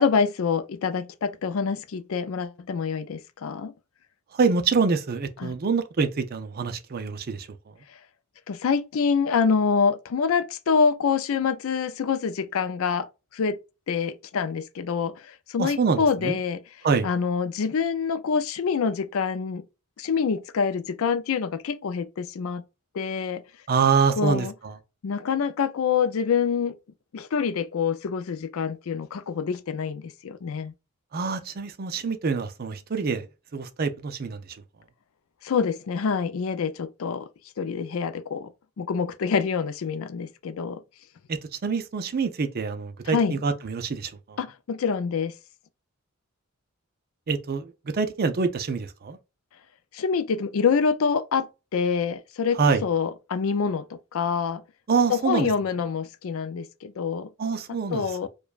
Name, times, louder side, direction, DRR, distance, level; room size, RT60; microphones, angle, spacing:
voice 1, 0.0-3.7 5.4-5.5 8.5-13.1 13.3-13.6 13.9-16.6 17.0-19.6 20.0-22.6 22.9-23.4 24.2-24.5 25.0-26.8 27.1-30.7 35.4-37.3 37.6-38.5 38.8-40.8 43.1-43.4 44.4-45.3 49.9-51.5 51.7-54.6 55.1-57.3 57.9-58.3, left 6 dB, 65° left, 0.4 m, -26 dB
voice 2, 4.3-7.5 15.6-16.4 16.8-17.1 23.7-24.8 31.1-33.3 33.5-34.6 41.3-44.4 47.3-49.2 52.5-52.8 54.9-55.5 57.4-58.3, right 5 dB, 45° right, 0.5 m, -26 dB
4.8 x 2.3 x 2.4 m
head